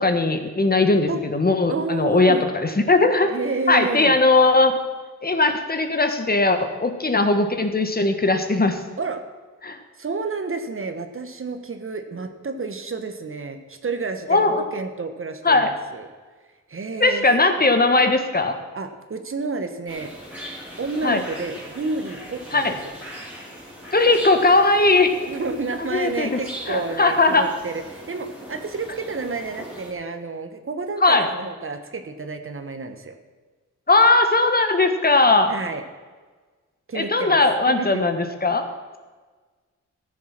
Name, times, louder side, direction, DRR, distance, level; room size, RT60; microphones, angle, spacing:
voice 1, 0.0-3.3 3.7-4.8 5.2-8.8 9.6-9.8 14.3-14.6 15.4-15.7 17.0-18.6 21.0-21.2 22.5-22.7 23.9-25.1 25.9-26.4 26.7-27.5 31.0-31.3 33.9-35.5 36.9-38.6, left 3 dB, 30° left, 7 dB, 1.3 m, -19 dB
voice 2, 1.7-2.4 3.2-4.2 9.0-9.2 10.0-16.1 16.7-17.3 18.7-20.1 20.8-22.8 25.3-33.2 35.5-35.8 36.9-37.4 37.8-38.0, right 3 dB, 45° right, 7 dB, 1.2 m, -30 dB
sound 1, 19.9-29.9, equal, 5° right, 3.6 m, -40 dB
13.5 x 7.2 x 5.9 m, 1.4 s
cardioid pair, 65°, 31 cm